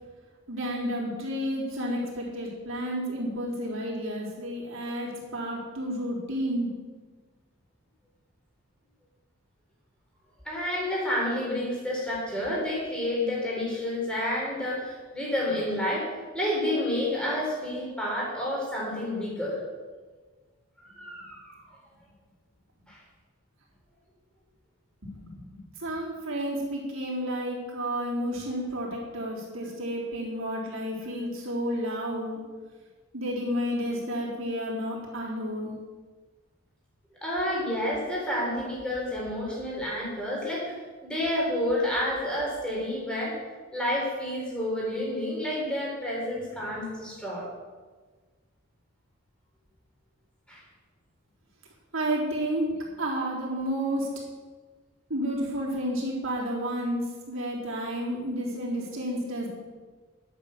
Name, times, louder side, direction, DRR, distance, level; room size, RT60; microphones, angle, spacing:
voice 1, 0.5-6.7 25.0-32.4 33.1-35.7 51.9-54.1 55.1-57.0 57.3-59.5, equal, 65° right, -4 dB, 3.8 m, -31 dB
voice 2, 10.4-16.1 16.3-19.6 20.8-21.6 22.9-23.0 37.2-40.7 41.0-43.4 43.7-47.5 50.5-50.6, left 1 dB, 5° left, -4 dB, 3.9 m, -29 dB
11.5 x 8.7 x 6.7 m, 1.4 s
head